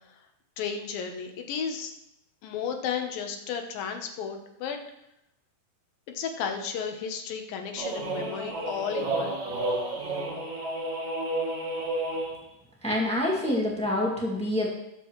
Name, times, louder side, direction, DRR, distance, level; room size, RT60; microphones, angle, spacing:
voice 1, 0.6-1.9 2.4-4.8 6.1-9.4, left 7 dB, 70° left, 4 dB, 2.6 m, -33 dB
sound 1, 7.8-12.4, right 2 dB, 55° right, 2.7 m, -31 dB
voice 2, 12.8-14.7, left 1 dB, 5° left, -4 dB, 0.7 m, -26 dB
19.0 x 7.7 x 3.1 m, 0.85 s
omnidirectional pair, 4.7 m